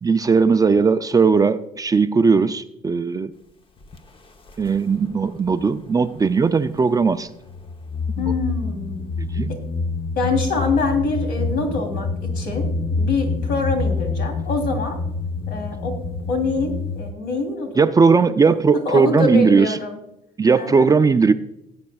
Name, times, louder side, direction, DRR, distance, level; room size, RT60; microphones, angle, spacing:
voice 1, 0.0-3.3 4.6-7.3 8.2-8.3 9.2-9.5 17.8-19.8 20.4-21.3, right 5 dB, 20° right, 10 dB, 0.4 m, -18 dB
sound 1, 3.8-4.0 4.5-5.6 6.0-6.9 7.4-17.1, left 4 dB, 30° left, 0.9 m, -27 dB
voice 2, 8.2-9.1 9.5-9.6 10.1-15.0 15.5-16.0 16.3-18.3 18.8-20.0 20.5-20.9, left 3 dB, 70° left, 4 dB, 3.2 m, -25 dB
18.0 x 8.7 x 2.3 m, 0.83 s
cardioid pair, 110°, 17 cm